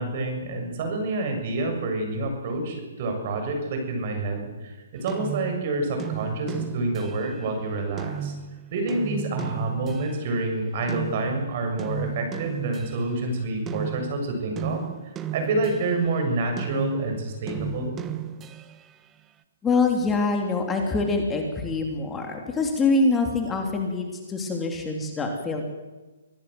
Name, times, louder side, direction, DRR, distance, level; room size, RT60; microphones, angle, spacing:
voice 1, 0.0-8.4 8.7-14.8 15.3-18.0, right 2 dB, 45° right, 4 dB, 7.2 m, -28 dB
sound 1, 5.1-10.4 10.9-16.2 16.6-18.9, right 9 dB, 20° right, 1.2 m, -35 dB
voice 2, 19.6-25.6, left 3 dB, 15° left, 3 dB, 3.2 m, -25 dB
25.0 x 17.5 x 7.9 m, 1.2 s
figure-of-eight pair, 130°, 0 cm